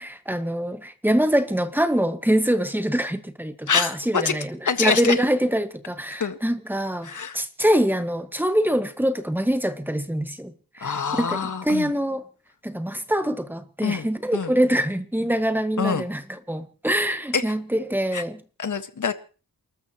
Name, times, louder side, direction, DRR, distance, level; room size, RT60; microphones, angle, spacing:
voice 1, 0.0-10.5 10.8-11.4 11.6-12.2 12.6-16.2 16.5-18.4, equal, 5° right, 1.7 m, -24 dB
voice 2, 3.7-4.3 4.6-5.1 6.2-6.4 7.0-7.4 10.8-11.9 13.8-14.5 15.8-16.0 17.3-17.5 18.1-18.2 18.6-19.1, left 5 dB, 55° left, 1.7 m, -25 dB
29.0 x 13.5 x 3.1 m
wide cardioid pair, 100°, 36 cm